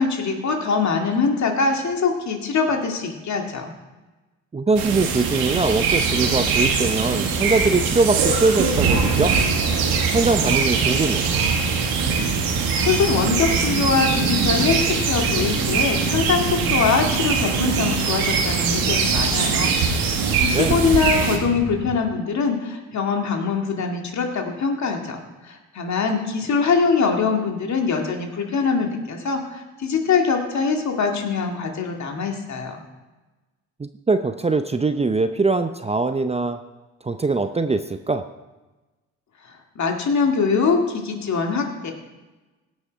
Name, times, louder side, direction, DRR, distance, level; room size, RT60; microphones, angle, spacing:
voice 1, 0.0-3.7 12.8-32.8 39.8-41.9, left 5 dB, 50° left, 3 dB, 2.2 m, -23 dB
voice 2, 4.5-9.3 10.1-11.2 20.2-20.7 33.8-36.6 37.0-38.2, right 3 dB, 20° right, 9 dB, 0.6 m, -22 dB
sound 1, 4.8-21.4, right 5 dB, 75° right, 1.6 m, -22 dB
sound 2, 5.0-22.0, right 5 dB, 55° right, 2.3 m, -34 dB
17.0 x 6.4 x 4.5 m, 1.1 s
hypercardioid pair, 55°, 35 cm